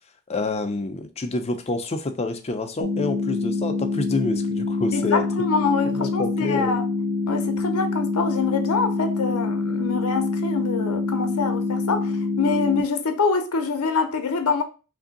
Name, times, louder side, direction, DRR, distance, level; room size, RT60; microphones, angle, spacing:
voice 1, 0.3-5.2 5.9-6.8, left 3 dB, 30° left, 0.5 m, -28 dB
sound 1, 2.8-12.8, left 3 dB, 55° right, 0.9 m, -26 dB
voice 2, 4.9-6.8 7.3-14.6, left 4 dB, 75° left, 0.6 m, -25 dB
3.3 x 2.6 x 3.8 m
head